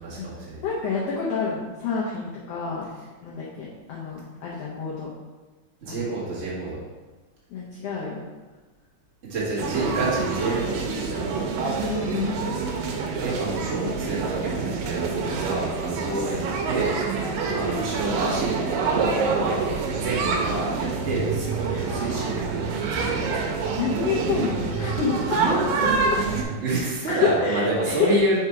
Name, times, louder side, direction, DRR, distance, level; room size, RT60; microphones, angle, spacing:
voice 1, 0.0-0.6 5.8-6.8 9.3-11.3 13.2-18.6 18.9-19.6 20.0-21.5 21.8-22.7 23.0-23.5 25.3-25.6 26.3-28.4, right 2 dB, 35° right, -8 dB, 1.2 m, -28 dB
voice 2, 0.6-2.9 3.2-5.1 5.9-6.1 7.5-8.2 11.7-12.5 21.7-22.3 23.8-25.4 25.8-25.9 26.3-26.6 27.1-28.1, left 5 dB, 80° left, -5 dB, 1.4 m, -28 dB
sound 1, 9.6-26.4, right 4 dB, 85° right, 2.4 m, -27 dB
4.9 x 4.3 x 4.7 m, 1.2 s
omnidirectional pair, 3.9 m